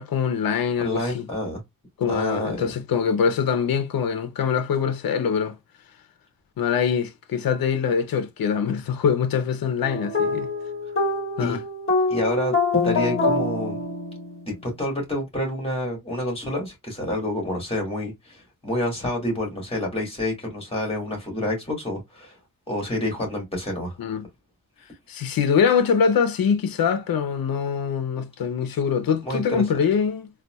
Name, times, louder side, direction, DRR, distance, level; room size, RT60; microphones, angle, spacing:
voice 1, 0.0-1.3 2.0-5.6 6.6-10.5 11.4-11.6 24.0-24.3 25.1-30.3, left 7 dB, 80° left, 0.7 m, -23 dB
voice 2, 0.8-1.6 2.1-2.7 11.4-11.6 12.1-12.6 12.8-13.8 14.5-22.4 22.7-24.0 29.2-29.6, left 1 dB, 15° left, 2.0 m, -28 dB
sound 1, 9.8-14.4, left 3 dB, 40° left, 1.1 m, -25 dB
4.0 x 2.4 x 2.2 m
wide cardioid pair, 120°, 35 cm